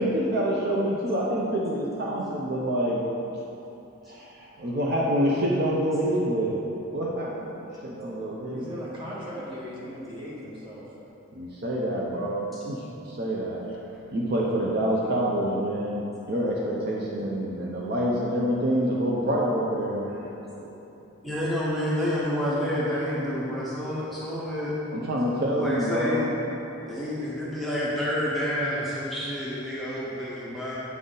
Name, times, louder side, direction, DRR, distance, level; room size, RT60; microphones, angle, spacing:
voice 1, 0.0-3.0 4.1-6.6 6.9-8.8 11.3-13.6 14.1-20.7 24.9-26.3, equal, 50° right, -4 dB, 0.6 m, -27 dB
voice 2, 8.5-11.0 13.7-13.8 30.2-30.3, equal, 25° right, -7 dB, 1.3 m, -39 dB
voice 3, 21.2-24.7 25.5-26.2 26.9-30.8, equal, ahead, -8 dB, 0.7 m, -29 dB
8.1 x 4.0 x 3.8 m, 2.9 s
head